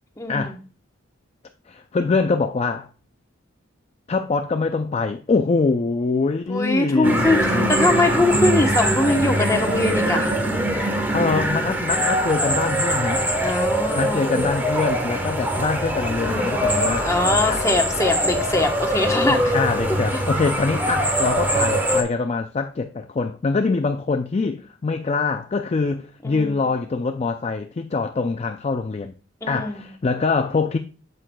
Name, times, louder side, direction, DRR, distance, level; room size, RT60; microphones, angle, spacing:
voice 1, 0.2-0.6 6.5-10.3 13.4-14.4 16.3-19.5 20.1-20.2 26.2-26.7 29.4-29.8, left 2 dB, 15° left, 1.0 m, -22 dB
voice 2, 1.7-2.9 4.1-7.7 11.1-13.2 14.0-17.1 17.5-17.6 19.3-29.1 29.5-30.8, left 4 dB, 30° left, 0.4 m, -24 dB
sound 1, 7.0-22.0, right 1 dB, 10° right, 1.2 m, -22 dB
8.4 x 7.8 x 2.2 m
head